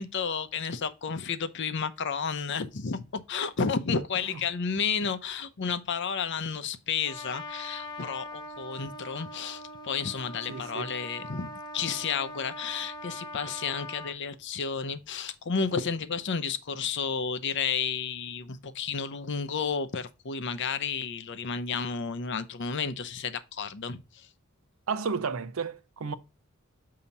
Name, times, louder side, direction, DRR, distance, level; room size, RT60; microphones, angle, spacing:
voice 1, 0.0-24.3, left 6 dB, 55° left, 0.6 m, -32 dB
Trumpet, 7.0-14.2, left 1 dB, 20° left, 0.7 m, -42 dB
voice 2, 10.5-10.9 24.9-26.1, right 5 dB, 70° right, 0.6 m, -32 dB
7.0 x 2.8 x 5.3 m
head